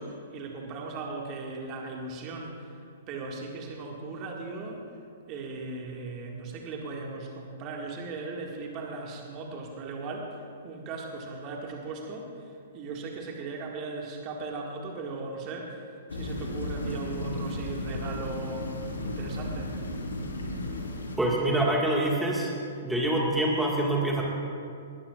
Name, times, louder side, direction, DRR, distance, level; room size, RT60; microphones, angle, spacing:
voice 1, 0.0-4.9 5.3-19.8, right 3 dB, 30° right, 0 dB, 1.9 m, -38 dB
sound 1, 16.1-21.2, left 1 dB, 70° left, 2.2 m, -34 dB
voice 2, 21.2-22.5 22.8-24.2, right 1 dB, 5° right, -3 dB, 1.8 m, -25 dB
20.0 x 19.5 x 2.4 m, 2.3 s
figure-of-eight pair, 110°, 0 cm